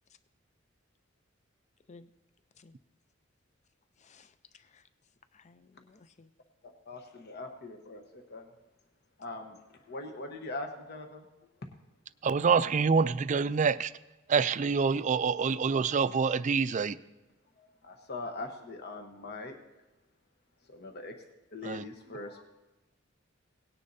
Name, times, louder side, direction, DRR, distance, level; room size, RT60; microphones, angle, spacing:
voice 1, 4.0-4.9 5.3-6.3, left 4 dB, 35° left, 12 dB, 0.5 m, -57 dB
voice 2, 6.9-8.5 9.2-11.3 17.6-19.5 20.7-21.1 21.5-22.4, left 2 dB, 55° left, 3 dB, 1.1 m, -42 dB
voice 3, 12.2-13.9 14.3-17.0 21.6-21.8, right 5 dB, 40° right, 14 dB, 0.4 m, -26 dB
18.0 x 9.8 x 2.7 m, 1.1 s
head